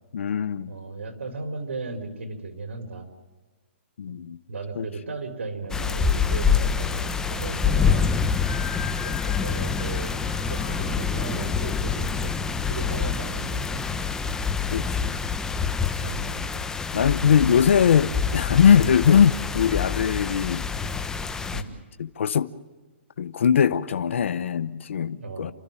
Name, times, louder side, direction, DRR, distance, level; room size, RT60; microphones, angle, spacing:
voice 1, 0.1-0.7 4.0-4.4 4.8-4.9 14.7-15.1 16.9-20.6 22.0-22.5 23.2-25.5, left 8 dB, 75° left, 1.0 m, -21 dB
voice 2, 0.7-3.1 4.1-8.1 9.0-10.2 10.5-12.3 12.7-13.8 16.0-16.6 21.5-21.7 25.2-25.5, right 3 dB, 80° right, 4.5 m, -36 dB
sound 1, 5.7-21.6, left 6 dB, 10° left, 1.1 m, -26 dB
sound 2, 6.8-13.1, left 8 dB, 55° left, 3.7 m, -41 dB
29.5 x 14.0 x 9.1 m
hypercardioid pair, 145°, 7 cm